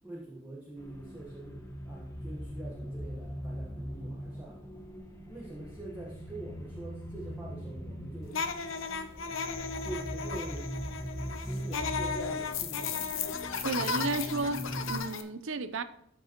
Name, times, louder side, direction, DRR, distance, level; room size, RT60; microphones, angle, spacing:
voice 1, 0.0-4.6 5.3-8.4 9.8-10.7 11.3-13.1, right 2 dB, 10° right, 1.3 m, -44 dB
sound 1, 0.8-15.0, equal, 15° left, 1.0 m, -41 dB
sound 2, 8.3-15.2, left 5 dB, 80° left, 0.8 m, -35 dB
voice 2, 13.5-15.8, right 3 dB, 75° right, 0.6 m, -33 dB
13.5 x 5.2 x 3.0 m
head